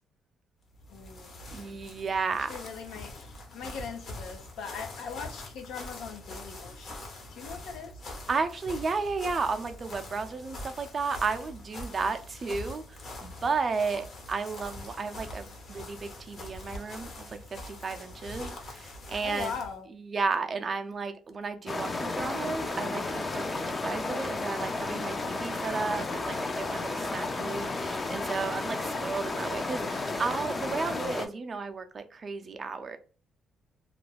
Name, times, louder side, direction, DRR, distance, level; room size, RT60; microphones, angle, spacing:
sound 1, 0.7-19.8, left 2 dB, 55° left, 0.8 m, -44 dB
voice 1, 0.9-1.8 2.5-7.0 7.3-7.9 19.2-19.9, left 6 dB, 85° left, 0.5 m, -40 dB
voice 2, 1.5-2.5 8.3-12.8 13.2-17.4 17.7-19.6 19.9-33.0, right 4 dB, 40° right, 0.4 m, -33 dB
sound 2, 21.7-31.3, left 3 dB, 30° left, 0.4 m, -33 dB
2.4 x 2.2 x 3.2 m
cardioid pair, 90°, 0 cm